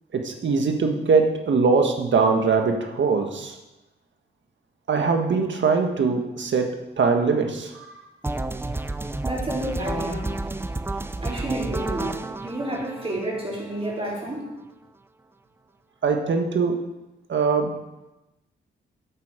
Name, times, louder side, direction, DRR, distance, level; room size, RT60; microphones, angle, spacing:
voice 1, 0.1-3.5 4.9-7.9 16.0-16.8 17.3-17.7, right 4 dB, 65° right, 4 dB, 1.7 m, -22 dB
sound 1, 8.2-14.2, right 2 dB, 10° right, 0.5 m, -31 dB
voice 2, 9.2-10.3 11.2-14.5, right 1 dB, 30° right, -4 dB, 4.5 m, -30 dB
11.0 x 8.6 x 5.1 m, 1.0 s
cardioid pair, 90°, 20 cm